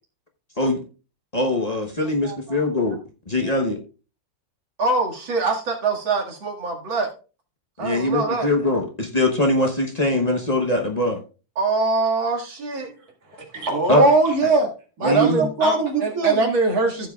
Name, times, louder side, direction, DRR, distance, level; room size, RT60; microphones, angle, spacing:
voice 1, 1.3-3.0 3.3-3.8 7.8-11.2 13.9-14.0 15.0-15.4, left 2 dB, 30° left, 0.7 m, -22 dB
voice 2, 2.2-2.9 3.4-3.5 4.8-7.1 7.8-8.5 11.6-12.9 15.0-15.7 16.0-17.1, right 3 dB, 85° right, 2.8 m, -23 dB
voice 3, 13.3-14.7 15.0-16.5, right 3 dB, 50° right, 2.4 m, -20 dB
15.5 x 7.3 x 2.4 m
omnidirectional pair, 2.1 m